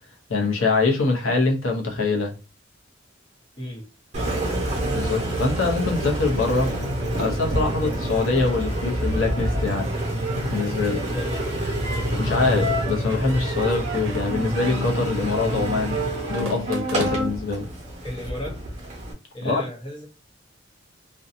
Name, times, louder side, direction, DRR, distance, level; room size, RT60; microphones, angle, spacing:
voice 1, 0.3-2.3 4.8-6.7 7.1-9.9 10.5-11.0 12.1-16.0 16.3-17.7 19.4-19.6, left 3 dB, 90° left, 0.7 m, -24 dB
Engine, 4.1-19.1, equal, 35° right, 0.9 m, -27 dB
voice 2, 11.1-11.5 18.0-18.6 19.3-20.1, equal, 25° left, 0.9 m, -33 dB
sound 1, 13.1-14.3 14.5-14.9 16.3-17.5, right 3 dB, 90° right, 0.5 m, -37 dB
2.6 x 2.2 x 2.5 m
head